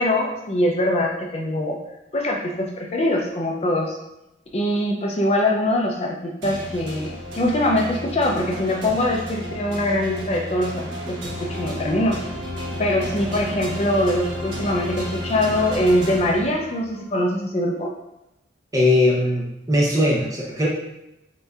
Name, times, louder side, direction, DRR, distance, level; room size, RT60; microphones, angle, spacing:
voice 1, 0.0-1.8 2.1-4.0 4.5-12.2 12.8-17.9, left 1 dB, 35° left, 0 dB, 0.4 m, -23 dB
sound 1, 6.4-17.0, equal, 90° right, 1.0 m, -32 dB
voice 2, 18.7-20.7, left 1 dB, 20° right, -4 dB, 0.7 m, -19 dB
6.6 x 2.7 x 2.3 m, 0.90 s
head